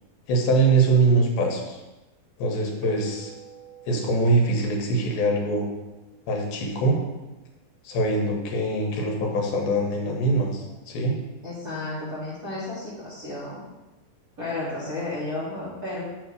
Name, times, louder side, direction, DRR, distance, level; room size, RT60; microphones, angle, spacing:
voice 1, 0.3-1.8 2.4-3.3 3.9-5.7 6.3-7.0 7.8-11.2, right 2 dB, 80° left, 1 dB, 3.0 m, -23 dB
sound 1, 2.8-7.5, right 6 dB, 60° right, 1.7 m, -48 dB
voice 2, 11.4-13.6 14.4-16.0, left 2 dB, 35° right, -10 dB, 1.6 m, -32 dB
7.9 x 3.5 x 6.3 m, 1.1 s
omnidirectional pair, 4.2 m